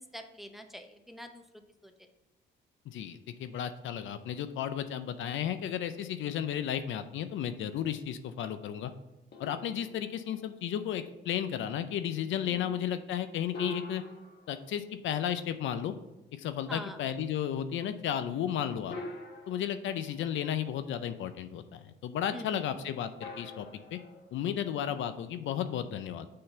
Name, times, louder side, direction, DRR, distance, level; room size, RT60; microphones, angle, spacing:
voice 1, 0.0-1.4 1.8-2.1 16.7-17.0 22.3-22.7, equal, ahead, 5 dB, 0.7 m, -44 dB
voice 2, 2.9-8.9 9.4-14.0 14.5-15.9 16.3-19.0 19.5-24.0 24.3-26.3, left 9 dB, 75° left, 10 dB, 0.5 m, -33 dB
sound 1, 9.3-10.8 13.5-15.6 17.2-17.3 18.9-20.8 23.2-25.2, left 2 dB, 55° left, 1.5 m, -46 dB
6.6 x 3.8 x 5.6 m, 1.0 s
cardioid pair, 90°, 20 cm